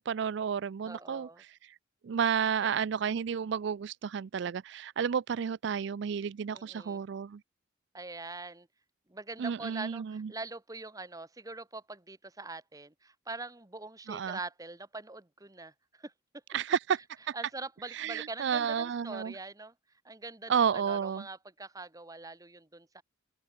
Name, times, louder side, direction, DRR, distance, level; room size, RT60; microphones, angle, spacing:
voice 1, 0.0-1.7 2.0-7.4 9.4-10.3 14.1-14.4 16.5-17.0 17.3-17.4 17.9-19.3 20.5-21.2, right 7 dB, 60° right, 0.4 m, -31 dB
voice 2, 0.9-1.4 6.5-7.0 7.9-8.7 9.1-16.1 17.3-19.7 20.0-23.0, right 3 dB, 20° right, 1.4 m, -43 dB
open air
head